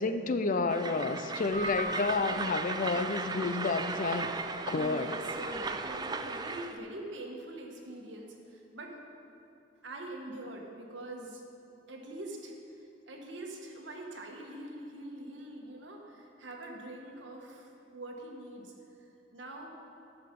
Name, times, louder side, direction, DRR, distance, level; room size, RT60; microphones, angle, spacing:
voice 1, 0.0-4.3 4.7-5.1, left 3 dB, 45° left, 9 dB, 0.5 m, -30 dB
Train, 0.7-6.8, right 4 dB, 20° right, 0.4 m, -37 dB
Keyboard (musical), 1.5-3.3, left 1 dB, 40° right, 1.2 m, -40 dB
voice 2, 4.7-9.0 9.8-11.4 11.9-18.7 19.0-19.7, right 1 dB, 70° right, 1 dB, 1.4 m, -44 dB
11.5 x 6.8 x 5.3 m, 2.7 s
head